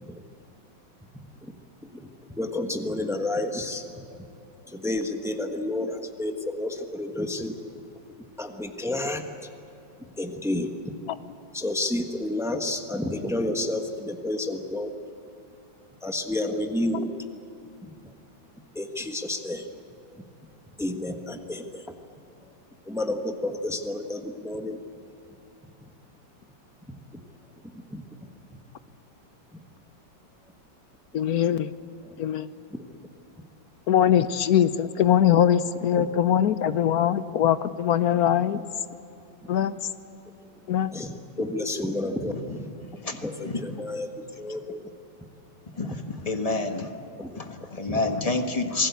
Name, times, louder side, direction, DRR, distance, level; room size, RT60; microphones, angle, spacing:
voice 1, 2.4-3.8 4.7-7.5 8.4-9.2 10.2-10.7 11.5-14.9 16.0-17.1 18.7-19.6 20.8-21.8 22.4-22.5 22.9-24.8 27.9-28.0 35.9-36.0 40.9-42.3 43.2-44.8 45.8-46.0 47.2-47.3 47.9-48.0, left 1 dB, ahead, 5 dB, 1.1 m, -30 dB
voice 2, 31.1-31.7 32.2-32.5 33.9-38.6 39.5-39.7 40.7-40.9, left 10 dB, 60° left, 13 dB, 1.0 m, -22 dB
voice 3, 43.0-43.6 45.8-46.9 47.4-48.9, left 3 dB, 20° left, 5 dB, 1.3 m, -28 dB
27.0 x 19.0 x 8.3 m, 2.8 s
omnidirectional pair, 2.1 m